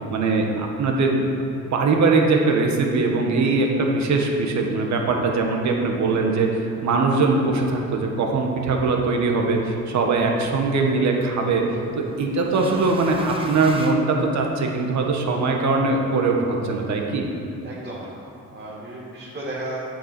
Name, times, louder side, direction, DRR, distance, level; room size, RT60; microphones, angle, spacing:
voice 1, 0.1-1.2 1.7-11.6 12.0-17.3, right 3 dB, 65° right, 1 dB, 1.4 m, -21 dB
sound 1, 11.0-14.8, right 1 dB, 20° right, 1.0 m, -38 dB
voice 2, 17.6-18.1 18.5-19.8, right 1 dB, 35° right, -6 dB, 1.8 m, -34 dB
7.8 x 7.6 x 6.1 m, 2.6 s
cardioid pair, 90°, 30 cm